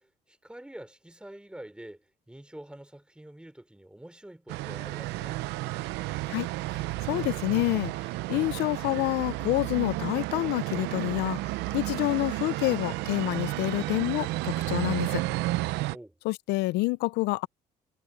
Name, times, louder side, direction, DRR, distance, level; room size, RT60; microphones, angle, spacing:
voice 1, 0.0-5.4 15.9-16.2, right 1 dB, 5° right, 4.3 m, -46 dB
sound 1, 4.5-16.0, right 19 dB, 90° right, 0.6 m, -32 dB
voice 2, 6.3-15.2 16.2-17.5, left 20 dB, 90° left, 0.5 m, -28 dB
cardioid pair, 110°, 17 cm